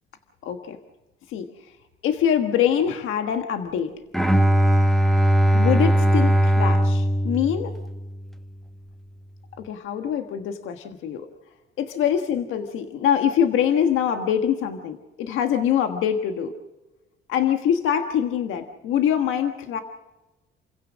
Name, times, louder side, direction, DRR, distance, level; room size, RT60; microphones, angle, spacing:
voice 1, 0.4-0.8 1.3-1.5 2.0-3.9 5.5-7.7 9.6-11.3 11.8-16.5 17.3-19.8, left 9 dB, 90° left, 6 dB, 1.5 m, -24 dB
Bowed string instrument, 4.1-8.3, equal, ahead, 1.5 m, -19 dB
28.5 x 16.0 x 6.3 m, 1.1 s
cardioid pair, 90°, 20 cm